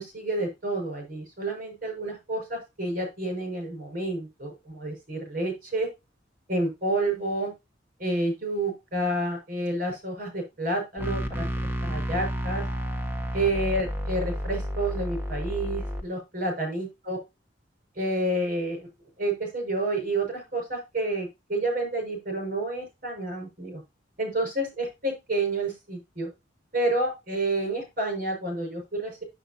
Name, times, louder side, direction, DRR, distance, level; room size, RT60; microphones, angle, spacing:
voice 1, 0.0-5.9 6.5-7.5 8.0-11.5 11.8-12.7 13.3-17.2 18.0-18.9 19.2-23.8 24.2-26.3 26.7-29.2, right 2 dB, 50° right, 3 dB, 5.6 m, -29 dB
sound 1, 11.0-16.0, equal, 10° right, 1.4 m, -31 dB
9.0 x 8.0 x 2.8 m, 0.23 s
head